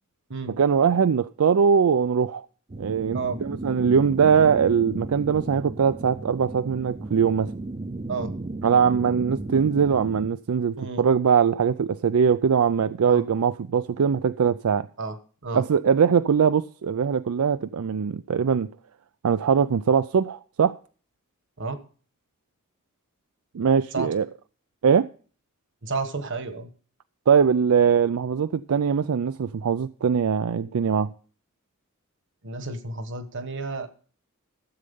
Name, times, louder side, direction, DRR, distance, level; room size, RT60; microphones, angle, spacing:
voice 1, 0.6-2.5 2.8-7.5 8.6-14.9 15.5-18.7 19.2-20.8 23.5-24.3 24.8-25.1 27.3-31.1, right 6 dB, 80° right, 0.4 m, -21 dB
sound 1, 2.7-10.3, right 2 dB, 30° right, 0.5 m, -35 dB
voice 2, 25.8-26.7 32.4-33.9, right 3 dB, 60° right, 1.3 m, -31 dB
13.5 x 7.8 x 5.4 m
head